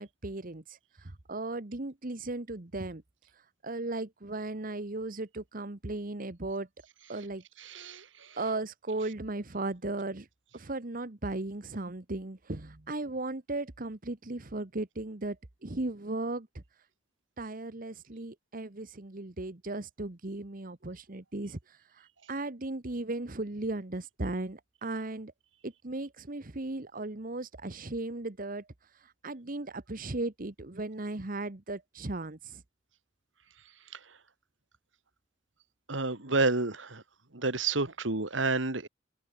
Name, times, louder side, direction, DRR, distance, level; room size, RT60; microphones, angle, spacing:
voice 1, 0.0-3.0 3.6-6.7 7.1-7.4 8.4-10.3 10.5-15.4 15.6-16.6 17.4-25.3 25.6-28.7 29.0-32.6, right 2 dB, 45° right, 1.3 m, -36 dB
voice 2, 7.6-8.0 35.9-37.0 37.3-38.9, right 3 dB, 80° right, 2.4 m, -29 dB
head